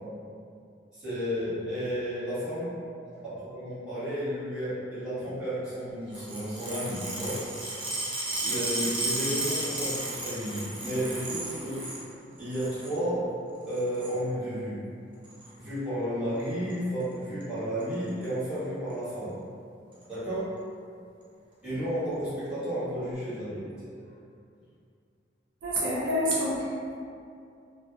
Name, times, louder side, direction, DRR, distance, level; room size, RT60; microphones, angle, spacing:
voice 1, 0.9-2.8 3.0-7.4 8.4-11.8 12.4-13.2 13.7-14.8 15.6-19.4 20.1-20.5 21.6-23.9, equal, 5° right, -14 dB, 1.3 m, -32 dB
sound 1, 6.1-12.0 12.4-12.9 13.7-14.2 15.2-15.5 16.4-16.7 17.0-17.1 17.4-17.5 17.8-18.3 18.9-19.0 19.9-20.0, right 2 dB, 25° right, 0.6 m, -33 dB
voice 2, 25.6-26.9, equal, 70° right, -7 dB, 0.5 m, -28 dB
2.8 x 2.5 x 2.3 m, 2.5 s
head